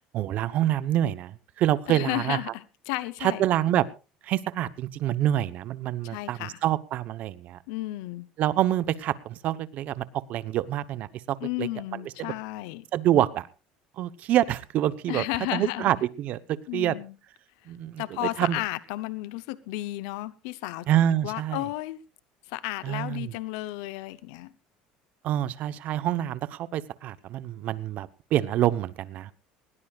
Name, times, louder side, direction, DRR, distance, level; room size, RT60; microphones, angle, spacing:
voice 1, 0.0-2.4 3.2-3.8 4.2-7.6 8.4-10.0 10.3-12.3 12.9-13.5 14.0-15.2 15.5-17.0 17.7-18.6 20.9-21.6 22.8-23.3 25.2-29.3, right 12 dB, 50° right, 1.0 m, -27 dB
voice 2, 1.9-3.4 6.0-6.6 7.7-8.3 11.4-12.9 15.1-15.9 16.7-17.1 18.0-20.9 21.2-22.0 22.5-24.5, left 18 dB, 80° left, 0.8 m, -33 dB
20.0 x 18.0 x 2.4 m
cardioid pair, 130°, 3 cm